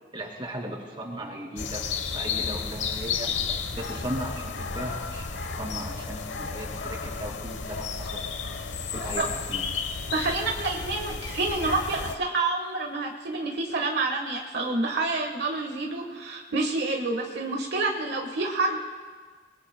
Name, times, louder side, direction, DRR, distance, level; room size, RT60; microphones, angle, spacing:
voice 1, 0.1-1.8 2.1-3.3 3.7-5.3 5.6-8.2 9.0-9.6, right 1 dB, 30° right, 0 dB, 2.6 m, -37 dB
sound 1, 1.6-12.2, left 5 dB, 85° left, 1.0 m, -32 dB
voice 2, 10.1-18.8, right 3 dB, 65° right, 1 dB, 1.4 m, -28 dB
29.0 x 21.0 x 2.2 m, 1.5 s
head